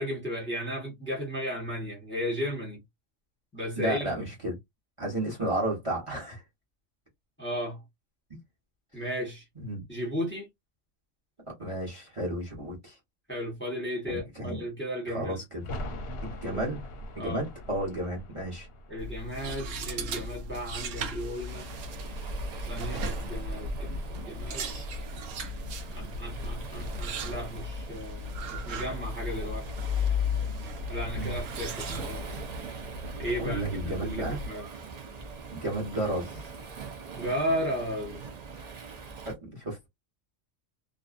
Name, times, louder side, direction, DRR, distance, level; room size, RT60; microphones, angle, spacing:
voice 1, 0.0-2.8 3.5-4.1 7.4-7.8 8.9-9.4 9.9-10.5 13.3-15.4 16.4-16.6 17.2-17.4 18.9-21.7 22.7-24.7 25.9-29.6 30.9-32.2 33.2-34.6 37.1-38.2, equal, 10° left, 0.9 m, -34 dB
voice 2, 3.8-4.6 5.0-6.4 9.6-9.8 11.6-13.0 14.1-14.6 15.1-15.7 16.2-16.8 17.1-18.7 31.1-31.4 33.4-34.4 35.5-36.4 39.2-39.9, right 1 dB, 25° right, 1.0 m, -32 dB
sound 1, 15.6-21.1 21.4-21.5, left 1 dB, 60° left, 0.8 m, -42 dB
sound 2, 19.0-34.5, left 2 dB, 75° right, 1.0 m, -35 dB
Waves surf, 21.5-39.3, right 5 dB, 50° right, 0.5 m, -43 dB
2.5 x 2.3 x 2.3 m
omnidirectional pair, 1.3 m